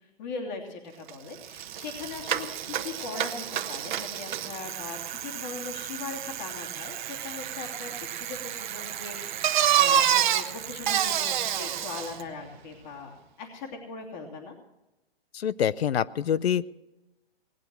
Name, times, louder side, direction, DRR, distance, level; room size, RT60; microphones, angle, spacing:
voice 1, 0.2-14.5, left 4 dB, 45° left, 1 dB, 3.1 m, -40 dB
Bicycle, 1.1-1.2 1.4-12.2, right 10 dB, 50° right, 1.1 m, -29 dB
voice 2, 15.3-16.7, left 9 dB, 75° left, 19 dB, 0.6 m, -26 dB
19.5 x 9.1 x 6.3 m, 0.97 s
hypercardioid pair, 130°, 31 cm